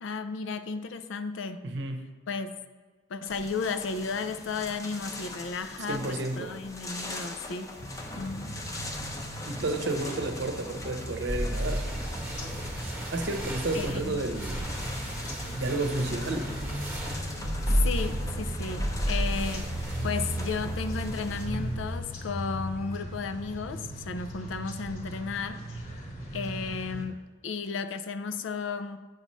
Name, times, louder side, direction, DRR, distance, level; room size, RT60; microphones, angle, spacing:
voice 1, 0.0-1.6 2.3-2.5 3.1-7.7 8.2-8.6 13.7-14.2 17.8-19.8 20.0-25.8 26.3-29.0, left 4 dB, 80° left, 10 dB, 0.5 m, -34 dB
voice 2, 1.6-2.1 5.9-6.5 9.5-11.9 13.1-14.6 15.6-16.5, right 2 dB, 65° right, 5 dB, 0.7 m, -31 dB
kroupy na okně, 3.2-21.5, left 2 dB, 20° left, 0.6 m, -42 dB
sound 1, 7.8-27.0, right 1 dB, 40° left, 1.1 m, -38 dB
sound 2, 11.3-22.0, equal, 10° right, 1.0 m, -33 dB
7.8 x 3.1 x 5.4 m, 1.4 s
head